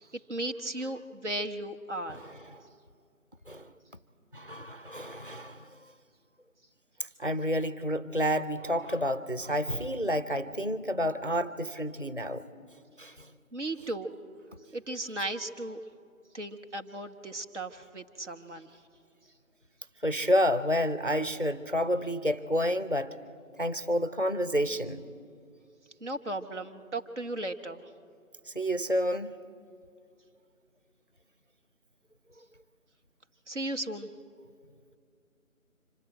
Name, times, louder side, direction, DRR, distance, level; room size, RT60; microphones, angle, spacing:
voice 1, 0.0-2.2 13.5-14.1 14.7-15.8 16.3-18.7 26.0-27.8 33.5-34.1, right 1 dB, 55° right, 6 dB, 1.2 m, -36 dB
voice 2, 2.1-2.6 3.5-3.7 4.3-5.7 7.2-12.4 13.0-13.3 20.0-23.2 23.6-25.0 28.5-29.4, equal, 40° left, 15 dB, 0.5 m, -29 dB
25.0 x 15.5 x 8.9 m, 2.4 s
figure-of-eight pair, 170°, 43 cm